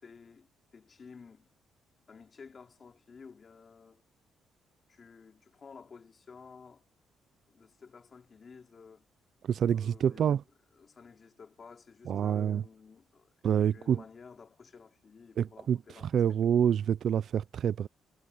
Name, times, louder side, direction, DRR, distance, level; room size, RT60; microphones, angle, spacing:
voice 1, 0.0-1.5 2.1-4.0 4.9-6.8 7.5-9.1 9.7-10.3 10.8-13.3 13.7-16.2, left 5 dB, 35° left, 3.0 m, -53 dB
voice 2, 9.4-10.4 12.1-12.6 13.4-14.0 15.4-15.8 16.1-17.9, right 8 dB, 55° right, 0.4 m, -27 dB
cardioid pair, 145°, 0 cm